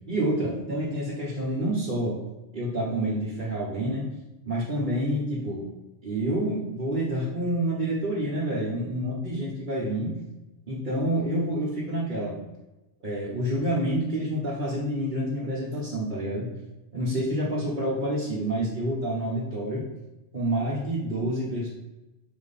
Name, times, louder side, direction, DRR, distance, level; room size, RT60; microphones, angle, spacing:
voice 1, 0.1-2.2 2.5-4.1 4.4-5.7 6.0-10.2 10.7-12.4 13.0-16.5 16.9-19.9 20.3-21.7, right 1 dB, 45° right, -7 dB, 1.2 m, -28 dB
5.6 x 4.3 x 4.1 m, 1.0 s
omnidirectional pair, 1.2 m